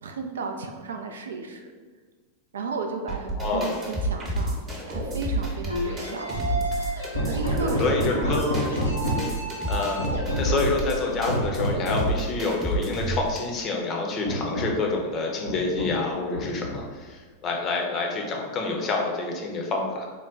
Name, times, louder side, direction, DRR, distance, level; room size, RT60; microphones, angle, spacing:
voice 1, 0.0-1.7 2.5-4.6 4.9-6.4 6.7-8.4 9.1-9.4, right 4 dB, 65° right, 4 dB, 0.4 m, -34 dB
sound 1, 3.1-13.4, right 2 dB, 25° right, 0.9 m, -30 dB
voice 2, 3.3-3.7 7.8-8.4 9.7-10.0 10.4-20.1, left 3 dB, 30° left, 0 dB, 0.6 m, -27 dB
sound 2, 5.7-10.8, equal, 85° right, 0.7 m, -33 dB
Hammer, 7.1-9.4 10.0-10.9 11.3-12.2 13.2-13.3 13.7-13.8 14.2-14.9 15.5-16.1 16.3-17.0, equal, 80° left, 0.6 m, -29 dB
3.8 x 2.2 x 3.6 m, 1.4 s
figure-of-eight pair, 90°, 0 cm